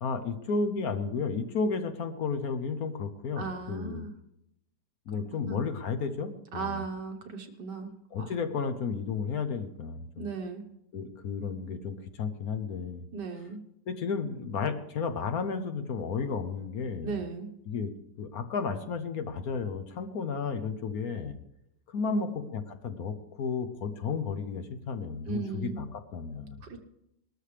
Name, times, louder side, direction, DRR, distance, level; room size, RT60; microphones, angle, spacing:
voice 1, 0.0-4.1 5.1-6.8 8.1-10.3 10.9-13.0 13.9-17.2 17.7-17.9 18.2-21.4 21.9-26.8, left 5 dB, 60° left, 8 dB, 1.3 m, -33 dB
voice 2, 3.4-4.1 5.1-5.6 6.5-7.9 8.2-8.3 10.2-10.6 13.1-13.6 17.0-17.5 22.1-22.3 25.3-25.8 26.6-26.8, right 4 dB, 75° right, 4 dB, 2.0 m, -36 dB
20.0 x 13.0 x 3.4 m, 0.82 s
omnidirectional pair, 1.9 m